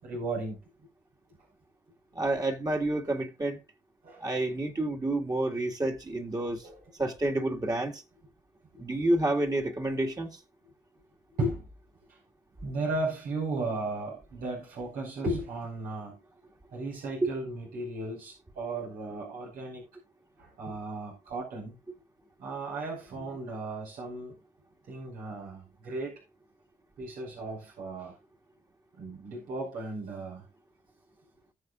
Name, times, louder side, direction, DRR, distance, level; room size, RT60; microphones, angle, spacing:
voice 1, 0.0-0.6 4.0-4.3 6.6-6.8 11.3-11.7 12.1-12.2 12.6-16.2 16.7-19.8 20.4-21.8 22.4-24.3 24.9-26.2 27.0-28.2 29.0-30.5, right 2 dB, 90° right, 5.3 m, -35 dB
voice 2, 2.2-3.6 4.2-6.6 7.0-8.0 8.8-10.4 17.2-17.3, right 2 dB, 25° right, 2.0 m, -29 dB
19.5 x 6.8 x 2.5 m
cardioid pair, 80°, 14 cm